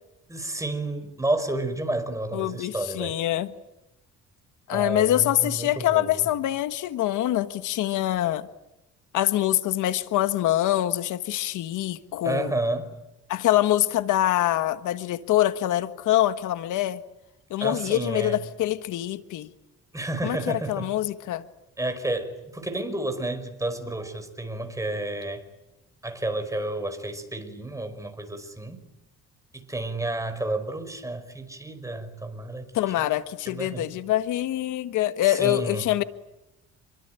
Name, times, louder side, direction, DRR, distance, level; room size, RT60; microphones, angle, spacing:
voice 1, 0.3-3.2 4.7-6.2 12.2-12.9 17.6-18.4 19.9-20.9 21.8-25.4 26.0-28.8 29.5-32.7 33.5-33.9 35.3-35.8, right 2 dB, 10° right, 8 dB, 5.3 m, -31 dB
voice 2, 2.3-3.5 4.7-8.5 9.1-12.5 13.3-17.0 17.5-19.5 20.2-21.4 32.7-36.0, left 14 dB, 80° left, 11 dB, 1.4 m, -25 dB
28.0 x 23.5 x 9.1 m, 0.93 s
cardioid pair, 105°, 30 cm